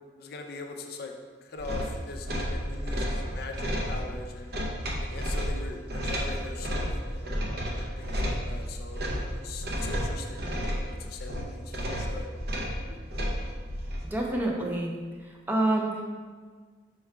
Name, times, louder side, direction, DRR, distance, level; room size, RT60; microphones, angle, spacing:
voice 1, 0.2-1.1 1.4-4.5 5.0-7.2 7.8-10.4 10.9-12.3, left 3 dB, 60° left, 3 dB, 0.4 m, -41 dB
sound 1, 1.6-14.1, equal, 60° right, 0.6 m, -32 dB
voice 2, 14.1-14.9 15.5-16.0, right 1 dB, 10° right, -1 dB, 0.5 m, -27 dB
4.5 x 2.2 x 4.6 m, 1.5 s
head